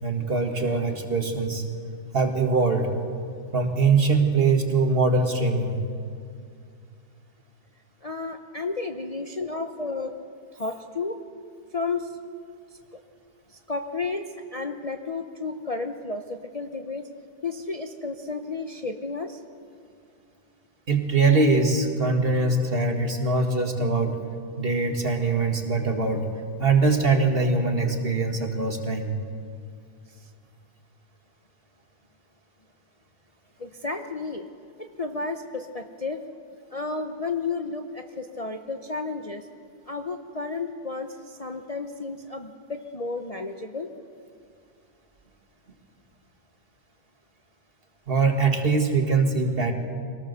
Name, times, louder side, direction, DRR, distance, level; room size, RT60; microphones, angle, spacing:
voice 1, 0.0-1.6 2.1-2.9 3.5-5.8 20.9-24.1 24.6-26.3 26.6-29.1 48.1-49.7, right 3 dB, 30° right, 3 dB, 2.0 m, -22 dB
voice 2, 8.0-10.1 10.5-11.2 11.7-12.2 13.5-14.2 14.5-17.1 17.4-19.4 30.2-30.3 33.6-34.5 34.8-36.2 36.7-39.5 39.9-43.9, left 3 dB, 75° left, 4 dB, 0.3 m, -32 dB
24.0 x 18.0 x 6.8 m, 2.2 s
omnidirectional pair, 2.0 m